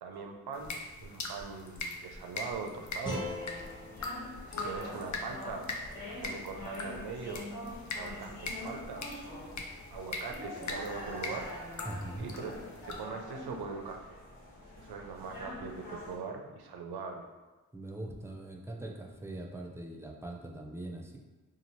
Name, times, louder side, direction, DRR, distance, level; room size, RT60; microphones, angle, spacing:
voice 1, 0.0-3.3 4.5-5.7 6.2-7.5 8.0-9.1 9.9-11.5 11.8-12.6 12.9-14.2 14.8-17.2, right 4 dB, 85° right, 3 dB, 0.5 m, -41 dB
sound 1, 0.5-13.0, left 3 dB, 50° left, 0.5 m, -42 dB
sound 2, 3.0-16.2, left 1 dB, 75° left, 1.3 m, -45 dB
sound 3, 3.0-6.1, left 1 dB, 10° left, 0.9 m, -43 dB
voice 2, 11.9-12.2 17.7-21.2, right 1 dB, 5° right, 0 dB, 0.4 m, -41 dB
2.8 x 2.5 x 2.9 m, 1.2 s
cardioid pair, 45°, 37 cm